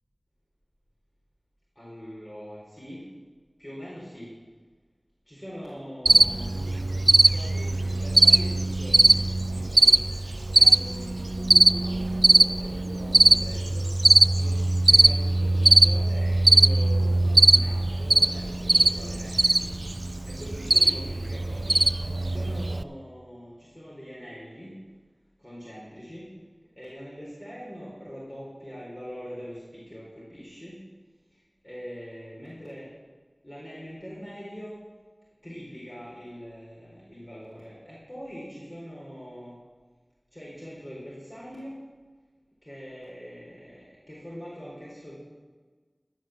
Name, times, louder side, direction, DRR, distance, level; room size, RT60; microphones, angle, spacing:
voice 1, 1.8-3.1 3.6-4.3 5.3-10.0 10.5-12.3 12.6-13.9 14.4-19.8 20.0-21.8 22.2-24.9 25.4-26.3 26.8-30.9 31.6-32.9 33.4-34.8 35.4-39.5 40.3-41.8 42.6-45.2, equal, 30° left, -7 dB, 4.2 m, -42 dB
Cricket, 6.1-22.8, right 2 dB, 60° right, 0.3 m, -20 dB
15.5 x 6.0 x 7.3 m, 1.4 s
wide cardioid pair, 40°, 0 cm